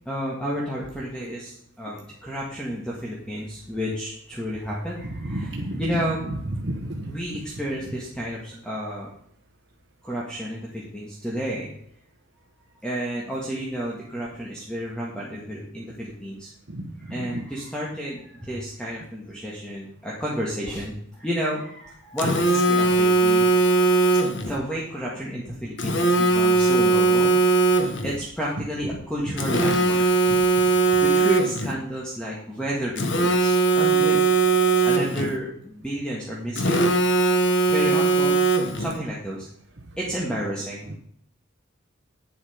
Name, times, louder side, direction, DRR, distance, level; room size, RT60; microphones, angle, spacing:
voice 1, 0.1-6.2 7.1-9.1 10.0-11.7 12.8-16.5 17.0-23.5 24.3-27.3 28.0-30.0 31.0-34.2 34.8-36.9 37.7-39.5 40.0-40.9, equal, 5° left, -5 dB, 1.7 m, -31 dB
voice 2, 5.2-7.1 16.7-16.8 17.1-17.4 28.6-28.7 29.2-29.6 30.3-30.4, right 1 dB, 55° right, 1 dB, 1.1 m, -32 dB
Telephone, 22.2-24.5 25.8-28.2 29.4-31.7 33.0-35.3 36.6-38.9, right 3 dB, 55° left, 1.2 m, -20 dB
10.5 x 7.5 x 5.1 m, 0.68 s
head